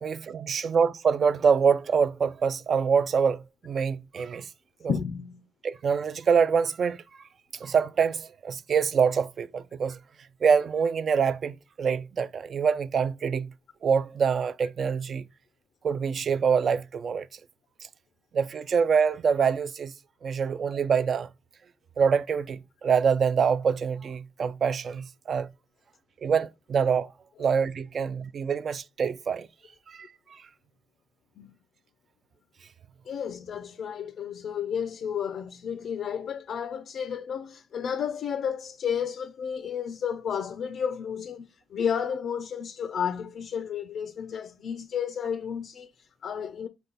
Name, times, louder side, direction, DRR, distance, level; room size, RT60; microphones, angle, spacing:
voice 1, 0.0-4.5 4.8-4.9 5.6-7.0 7.6-10.0 10.4-13.5 13.8-15.2 15.8-17.3 18.3-19.9 20.2-21.3 22.0-25.5 26.2-27.1 27.4-29.5 29.9-30.1, right 6 dB, 50° right, 0.4 m, -25 dB
voice 2, 4.8-5.4 31.4-31.5 33.1-46.7, left 7 dB, 60° left, 0.4 m, -32 dB
5.3 x 2.3 x 3.9 m
cardioid pair, 90°, 0 cm